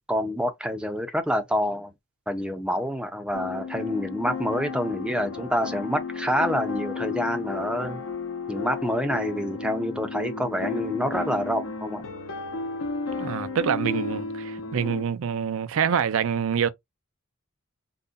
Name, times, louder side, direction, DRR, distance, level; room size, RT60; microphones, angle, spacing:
voice 1, 0.1-1.9 2.3-8.0 8.5-12.1, equal, 5° right, 0.5 m, -27 dB
sound 1, 3.3-15.0, left 4 dB, 70° left, 0.7 m, -33 dB
voice 2, 13.2-16.7, right 7 dB, 70° right, 0.4 m, -26 dB
3.7 x 2.1 x 2.5 m
head